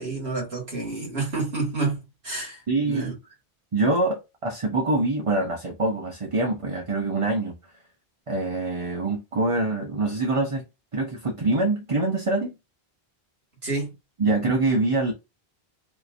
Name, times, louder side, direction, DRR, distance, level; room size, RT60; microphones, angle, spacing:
voice 1, 0.0-3.1 13.6-13.9, right 3 dB, 80° right, 2.0 m, -29 dB
voice 2, 2.7-3.1 3.7-7.6 8.3-10.6 10.9-12.5 14.2-15.1, right 2 dB, 35° right, 0.8 m, -24 dB
5.0 x 2.9 x 2.6 m
omnidirectional pair, 1.1 m